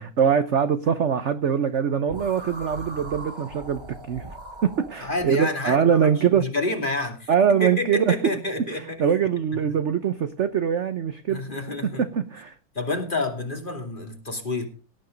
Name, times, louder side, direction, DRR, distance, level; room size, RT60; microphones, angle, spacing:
voice 1, 0.0-3.8 4.1-4.2 4.6-6.4 7.3-8.1 8.7-11.4 12.1-12.5, right 7 dB, 55° right, 10 dB, 0.8 m, -23 dB
sound 1, 2.1-5.3, right 2 dB, 15° right, 1.7 m, -39 dB
voice 2, 5.0-7.3 7.6-9.0 9.5-9.6 11.3-12.2 12.7-14.7, left 2 dB, 25° left, 4 dB, 2.7 m, -29 dB
17.5 x 9.0 x 5.2 m, 0.35 s
omnidirectional pair, 2.2 m